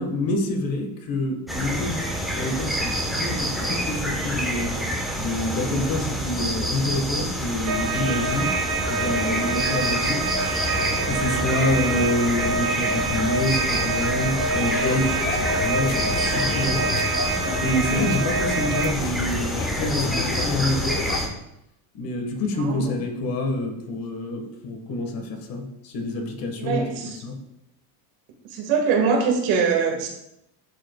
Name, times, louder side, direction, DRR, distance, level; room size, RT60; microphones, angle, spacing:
voice 1, 0.0-4.8 5.2-8.6 8.9-10.6 11.1-16.9 17.6-21.0 21.9-26.9 27.2-27.4, left 1 dB, 45° left, 3 dB, 1.4 m, -27 dB
sound 1, 1.5-21.3, equal, ahead, 1.0 m, -27 dB
sound 2, 7.7-18.9, right 4 dB, 35° right, 1.6 m, -27 dB
sound 3, 13.7-21.2, left 8 dB, 85° left, 0.8 m, -34 dB
voice 2, 22.6-22.9 26.6-27.2 28.5-30.1, right 5 dB, 65° right, 1 dB, 2.0 m, -23 dB
11.0 x 5.0 x 2.3 m, 0.82 s
cardioid pair, 140°, 48 cm